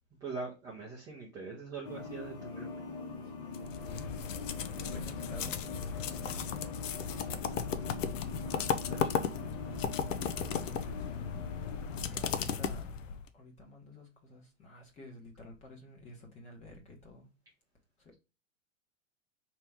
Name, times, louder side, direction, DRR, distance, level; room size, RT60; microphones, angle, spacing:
voice 1, 0.2-2.9 8.4-9.6, right 4 dB, 10° right, 0.6 m, -43 dB
sound 1, 1.8-12.1, left 4 dB, 45° left, 1.3 m, -44 dB
voice 2, 3.4-4.1 4.7-5.5 5.9-6.9 8.9-10.0 10.4-10.7 11.1-11.2 12.1-12.8 13.3-17.3, left 1 dB, 20° left, 1.1 m, -52 dB
sound 2, 3.5-13.3, left 7 dB, 75° left, 0.7 m, -35 dB
4.4 x 2.9 x 3.6 m
hypercardioid pair, 155°, 39 cm